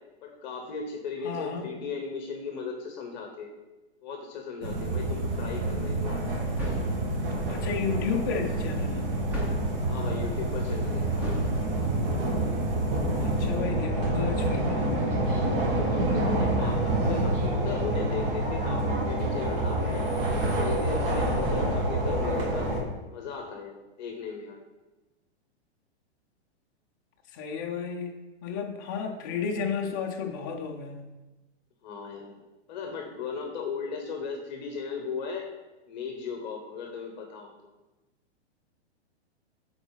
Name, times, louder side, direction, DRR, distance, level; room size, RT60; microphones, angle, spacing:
voice 1, 0.2-3.5 4.0-6.2 9.9-11.4 15.8-20.1 20.4-22.7 23.1-24.6 31.8-32.3 32.7-35.5 35.9-37.5, left 5 dB, 40° left, 2 dB, 0.9 m, -37 dB
voice 2, 1.2-1.7 7.5-9.0 13.2-14.8 27.3-28.1 28.4-31.1, left 6 dB, 20° left, 2 dB, 0.4 m, -32 dB
sound 1, 4.6-22.8, right 1 dB, 55° right, 1.5 m, -27 dB
sound 2, 6.5-7.1 9.3-9.8 11.2-11.6, equal, 5° right, 0.7 m, -32 dB
8.6 x 4.0 x 3.9 m, 1.1 s
hypercardioid pair, 165°, 34 cm